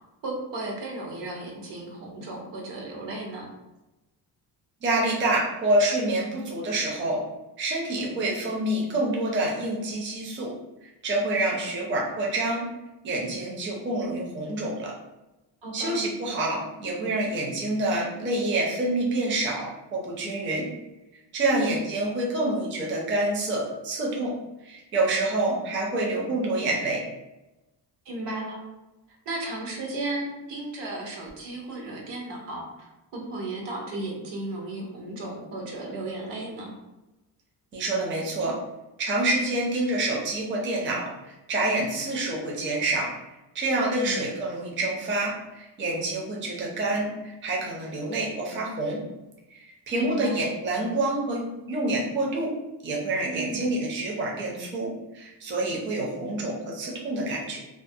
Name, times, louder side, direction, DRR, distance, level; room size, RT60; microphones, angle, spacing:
voice 1, 0.2-3.5 15.6-16.0 21.4-21.8 28.0-28.6 29.3-32.9 33.1-36.7 44.0-44.2 50.0-50.5 53.3-53.7, right 2 dB, 75° right, 0 dB, 0.8 m, -34 dB
voice 2, 4.8-7.2 7.6-10.5 11.0-12.7 13.0-14.9 15.7-20.7 21.3-24.3 24.6-27.0 37.7-38.6 39.0-43.1 43.5-49.0 49.5-52.5 52.8-57.6, right 2 dB, 30° right, -2 dB, 0.5 m, -27 dB
2.4 x 2.0 x 2.6 m, 1.0 s
cardioid pair, 130°, 42 cm